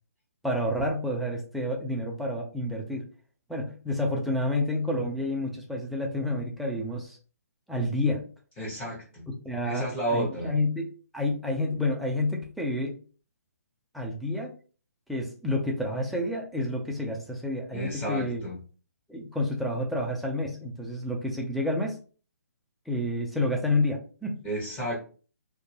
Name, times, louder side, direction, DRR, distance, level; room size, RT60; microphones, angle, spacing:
voice 1, 0.4-3.1 3.5-7.2 7.7-8.2 9.4-13.0 13.9-14.5 15.1-18.4 19.1-22.0 22.9-24.4, left 1 dB, ahead, -1 dB, 0.4 m, -29 dB
voice 2, 8.6-9.2 9.6-10.5 17.7-18.6 24.4-25.0, right 1 dB, 15° left, -5 dB, 0.8 m, -31 dB
2.2 x 2.1 x 3.0 m, 0.39 s
figure-of-eight pair, 140°, 9 cm